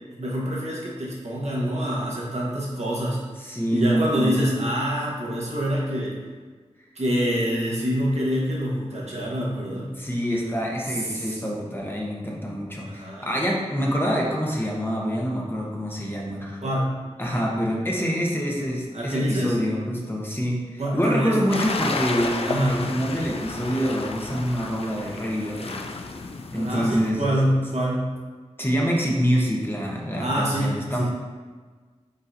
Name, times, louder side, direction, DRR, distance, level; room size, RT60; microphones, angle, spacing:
voice 1, 0.2-3.2 3.7-6.2 6.9-9.9 11.1-11.4 12.9-13.3 16.6-16.9 18.9-19.6 20.8-21.4 22.5-22.8 26.5-28.1 30.2-31.1, equal, 65° right, -5 dB, 1.2 m, -26 dB
voice 2, 3.4-4.5 10.0-16.6 17.2-25.8 26.5-27.4 28.6-31.1, equal, 20° left, -2 dB, 0.9 m, -26 dB
sound 1, 21.5-27.1, left 3 dB, 55° left, 0.4 m, -32 dB
5.2 x 3.9 x 2.6 m, 1.4 s
wide cardioid pair, 50°, 12 cm